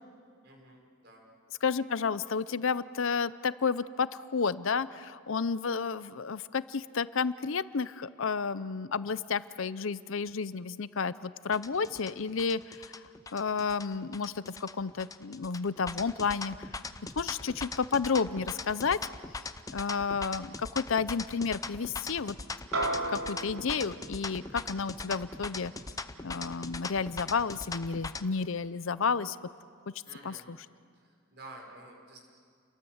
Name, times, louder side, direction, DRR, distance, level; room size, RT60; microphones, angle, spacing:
voice 1, 0.4-1.2 30.0-30.5 30.9-32.2, right 2 dB, 50° right, 1 dB, 5.5 m, -51 dB
voice 2, 1.6-12.8 13.3-16.6 17.2-19.0 19.7-22.4 23.1-25.7 26.2-29.4 29.9-30.0 30.2-30.6, left 5 dB, 60° left, 16 dB, 0.6 m, -31 dB
sound 1, 11.5-28.2, left 3 dB, 15° left, 0.7 m, -40 dB
sound 2, 22.7-27.4, right 2 dB, 70° right, 4.2 m, -37 dB
30.0 x 23.0 x 8.0 m, 2.2 s
head